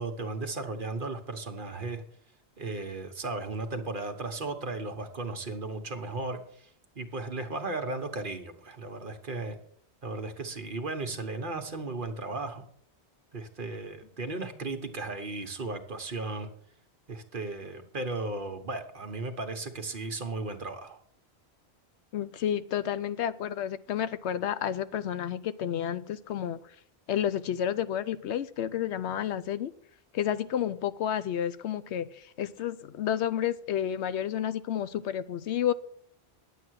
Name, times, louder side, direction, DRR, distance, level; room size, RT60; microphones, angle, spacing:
voice 1, 0.0-2.0 2.6-6.7 6.9-9.6 10.0-12.6 13.3-16.5 17.1-21.0, right 3 dB, 50° right, 6 dB, 1.3 m, -35 dB
voice 2, 22.1-26.6 27.1-29.7 30.1-35.7, left 10 dB, 90° left, 15 dB, 0.9 m, -30 dB
10.0 x 8.0 x 6.3 m, 0.64 s
omnidirectional pair, 1.1 m